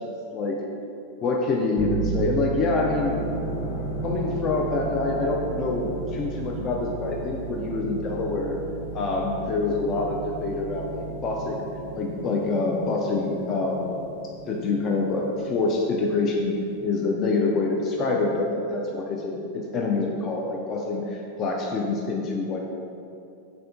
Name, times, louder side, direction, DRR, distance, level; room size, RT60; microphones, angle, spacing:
voice 1, 1.2-3.1 4.0-8.6 8.9-11.6 12.0-14.0 14.5-16.5 16.8-22.6, left 3 dB, 30° left, -1 dB, 0.4 m, -26 dB
Bass guitar, 1.8-11.6, right 5 dB, 5° left, 0.7 m, -34 dB
sound 1, 2.9-16.8, right 1 dB, 60° left, 0.8 m, -38 dB
3.5 x 3.4 x 3.5 m, 2.6 s
figure-of-eight pair, 90°, 0 cm